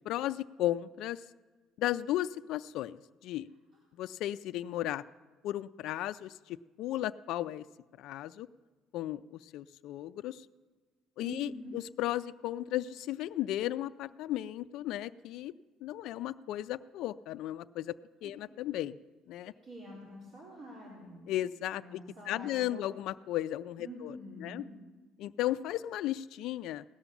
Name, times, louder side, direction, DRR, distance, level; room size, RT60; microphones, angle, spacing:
voice 1, 0.1-1.2 1.8-3.0 3.2-3.5 4.0-5.0 5.4-7.6 8.0-8.5 8.9-10.4 11.2-15.5 15.8-19.0 19.3-19.5 21.3-22.0 22.3-24.1 24.4-24.6 25.2-26.8, left 13 dB, 65° left, 11 dB, 0.4 m, -35 dB
voice 2, 11.2-11.8 18.2-18.3 19.4-21.2 21.7-22.9 23.8-24.7, equal, 35° right, -4 dB, 3.5 m, -46 dB
17.0 x 11.0 x 7.1 m, 1.3 s
cardioid pair, 145°, 0 cm